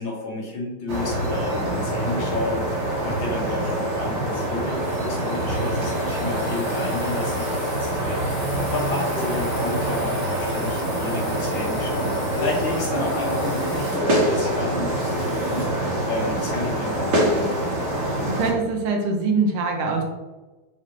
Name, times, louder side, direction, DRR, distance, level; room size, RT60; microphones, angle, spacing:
voice 1, 0.0-17.6, left 2 dB, 70° left, -2 dB, 1.9 m, -31 dB
sound 1, 0.9-18.5, right 1 dB, 65° right, 1.9 m, -25 dB
sound 2, 4.3-15.8, left 1 dB, 25° left, 0.8 m, -42 dB
voice 2, 18.2-20.0, right 4 dB, 80° right, 2 dB, 1.6 m, -23 dB
4.4 x 4.0 x 3.0 m, 1.2 s
omnidirectional pair, 2.4 m